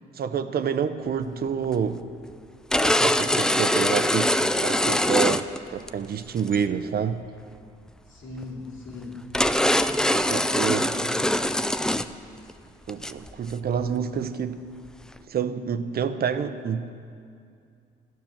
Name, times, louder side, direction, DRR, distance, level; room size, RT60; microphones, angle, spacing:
voice 1, 0.1-2.0 2.8-7.2 10.1-10.9 12.9-14.6 15.3-16.9, right 7 dB, 50° right, 11 dB, 0.6 m, -28 dB
sound 1, 1.6-1.7 2.7-5.9 6.4-6.6 8.4-8.5 8.9-9.0 9.3-12.1 12.4-12.5 12.9-13.5, left 1 dB, 5° left, 0.3 m, -23 dB
voice 2, 8.1-9.3 10.6-11.6, left 2 dB, 80° left, -3 dB, 2.7 m, -39 dB
12.0 x 6.0 x 8.8 m, 2.3 s
cardioid pair, 90°, 20 cm